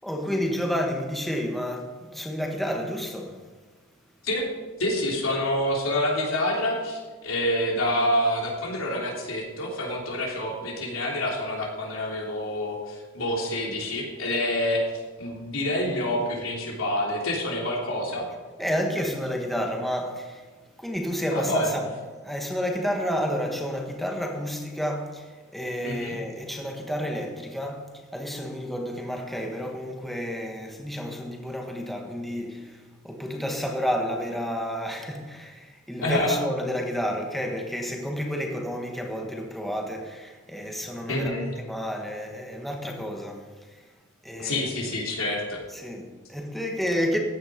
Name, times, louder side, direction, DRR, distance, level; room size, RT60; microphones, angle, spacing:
voice 1, 0.0-3.4 18.6-20.5 20.8-21.8 22.2-27.8 28.1-43.8 44.2-44.7 45.7-47.2, equal, ahead, 1.4 m, -30 dB
voice 2, 4.8-14.8 15.2-18.3 21.3-21.7 25.8-26.1 36.0-36.4 41.1-41.5 44.4-45.6, left 1 dB, 85° left, 3.4 m, -27 dB
14.5 x 9.5 x 5.2 m
head